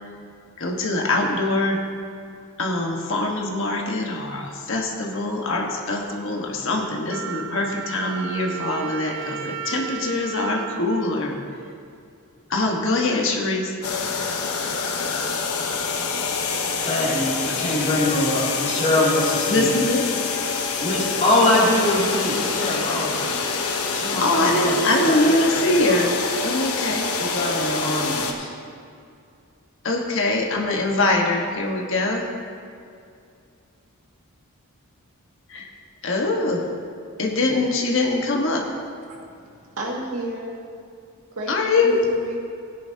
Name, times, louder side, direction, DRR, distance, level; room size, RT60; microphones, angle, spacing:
voice 1, 0.6-1.8 2.6-11.4 12.5-13.7 19.5-20.1 24.2-26.1 26.4-27.1 29.8-32.3 35.5-35.7 36.0-36.7 37.2-38.7 41.5-42.0, left 2 dB, 60° left, 0 dB, 1.3 m, -23 dB
Wind instrument woodwind instrument, 7.1-11.9, right 9 dB, 55° right, 0.5 m, -34 dB
sound 1, 13.8-28.3, left 4 dB, 75° left, 1.0 m, -26 dB
voice 2, 16.8-19.7 20.8-23.4 23.9-25.2 25.9-26.1 27.2-28.5, left 1 dB, 35° left, -5 dB, 2.6 m, -23 dB
voice 3, 39.1-40.6 41.3-42.4, right 2 dB, 75° right, -2 dB, 2.1 m, -32 dB
17.0 x 10.0 x 2.8 m, 2.4 s
head